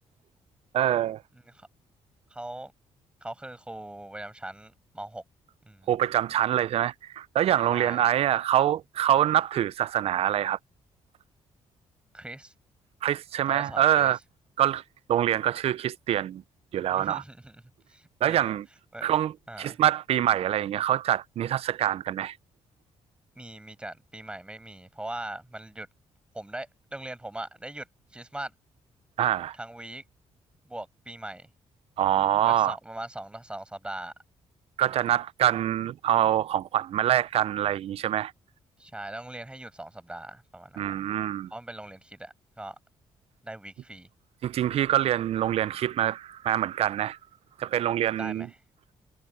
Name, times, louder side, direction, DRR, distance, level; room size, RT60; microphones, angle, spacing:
voice 1, 0.7-1.2 5.9-10.6 13.0-14.2 14.6-14.8 15.1-16.4 16.7-17.2 18.2-18.7 19.0-22.4 29.2-29.6 32.0-32.8 34.8-38.3 40.8-41.5 44.4-47.2 47.6-48.5, right 11 dB, 60° right, 0.5 m, -25 dB
voice 2, 2.3-2.7 3.2-5.2 5.6-5.9 7.7-8.1 12.1-12.5 13.5-14.1 16.9-17.6 17.9-18.5 18.9-19.1 19.5-19.8 23.4-25.9 26.3-27.9 28.1-28.5 29.5-30.0 30.7-31.5 32.5-34.1 34.9-35.2 38.8-40.9 41.5-42.8 43.4-44.1 48.1-48.6, right 1 dB, 10° right, 5.8 m, -40 dB
cardioid pair, 115°, 12 cm